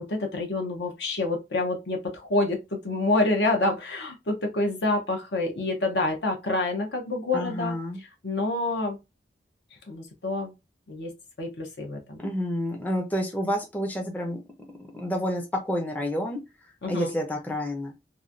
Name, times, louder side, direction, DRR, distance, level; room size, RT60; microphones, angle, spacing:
voice 1, 0.0-9.0 9.9-10.5 10.9-11.1 11.4-12.2 16.8-17.1, left 2 dB, 70° left, 0.8 m, -27 dB
voice 2, 7.3-8.0 12.2-14.4 14.8-16.4 16.9-17.9, equal, 10° left, 0.5 m, -29 dB
3.0 x 2.2 x 2.5 m
head